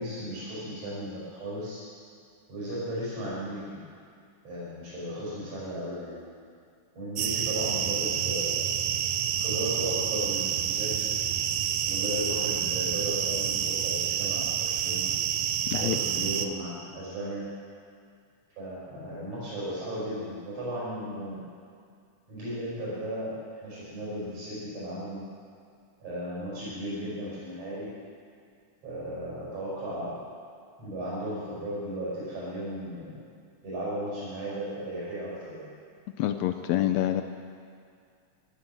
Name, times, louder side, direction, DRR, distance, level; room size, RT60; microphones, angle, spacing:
voice 1, 0.0-1.8 2.5-3.8 4.4-6.2 6.9-8.6 9.4-11.1 11.8-15.1 15.8-17.5 18.6-21.4 22.3-25.2 26.0-27.9 28.8-30.2 30.8-33.2 33.6-35.7, equal, 60° right, -9 dB, 6.4 m, -35 dB
sound 1, 7.2-16.5, right 9 dB, 75° right, 2.0 m, -28 dB
voice 2, 36.2-37.2, left 13 dB, 75° left, 8 dB, 1.7 m, -26 dB
15.5 x 11.5 x 7.5 m, 2.3 s
omnidirectional pair, 3.4 m